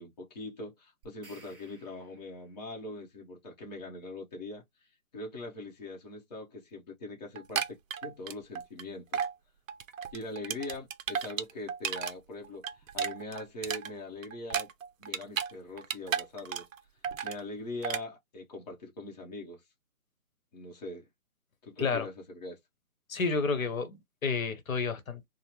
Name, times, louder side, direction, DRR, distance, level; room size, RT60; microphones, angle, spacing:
voice 1, 0.0-4.6 5.1-9.3 10.1-14.7 15.0-16.7 17.2-19.6 20.5-21.0 21.6-22.6, left 2 dB, 30° left, 0.7 m, -42 dB
sound 1, 1.0-2.6, right 2 dB, 15° right, 1.1 m, -57 dB
sound 2, 7.4-8.8 9.1-9.3 9.7-12.1 12.4-15.5 15.8-16.8 17.0-17.4 17.8-18.0, right 7 dB, 65° right, 0.5 m, -34 dB
voice 2, 23.1-25.2, left 4 dB, 65° left, 0.9 m, -30 dB
3.3 x 2.0 x 2.8 m
hypercardioid pair, 150°, 44 cm